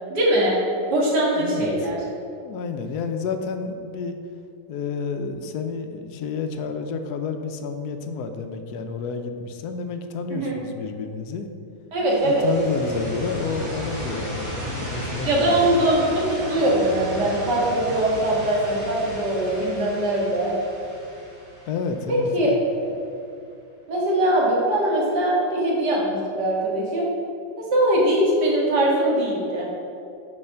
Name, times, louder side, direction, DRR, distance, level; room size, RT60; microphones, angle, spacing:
voice 1, 0.1-0.6 0.9-2.0 10.3-10.6 11.9-12.5 15.3-20.5 22.1-22.5 23.9-27.1 27.6-29.7, right 1 dB, 80° right, -4 dB, 2.2 m, -21 dB
voice 2, 1.4-1.9 2.4-4.2 4.7-11.5 12.2-15.9 21.7-22.6, left 5 dB, 75° left, 6 dB, 1.1 m, -30 dB
sound 1, 12.1-22.8, equal, 25° right, 1.8 m, -34 dB
5.5 x 5.1 x 6.5 m, 2.6 s
omnidirectional pair, 1.8 m